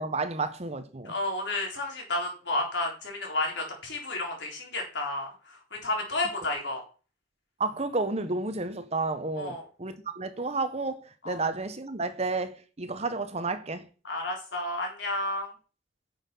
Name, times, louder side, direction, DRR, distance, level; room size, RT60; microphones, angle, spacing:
voice 1, 0.0-1.1 7.6-13.9, right 3 dB, 35° right, 1.0 m, -31 dB
voice 2, 1.0-6.8 9.3-9.7 11.2-11.4 14.0-15.5, left 2 dB, 70° left, 4.1 m, -31 dB
9.9 x 6.6 x 5.4 m
head